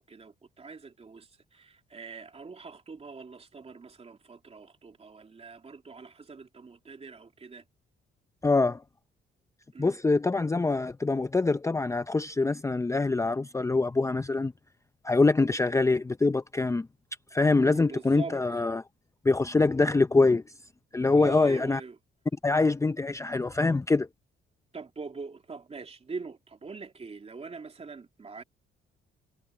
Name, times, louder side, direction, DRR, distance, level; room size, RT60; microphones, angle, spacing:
voice 1, 0.0-7.6 9.7-10.0 17.6-18.4 21.1-22.0 24.7-28.4, right 4 dB, 30° right, 2.7 m, -43 dB
voice 2, 8.4-8.8 9.8-14.5 15.0-16.9 17.3-18.8 19.2-20.4 20.9-21.8 22.4-24.1, left 3 dB, 15° left, 0.6 m, -24 dB
cardioid pair, 90°, 20 cm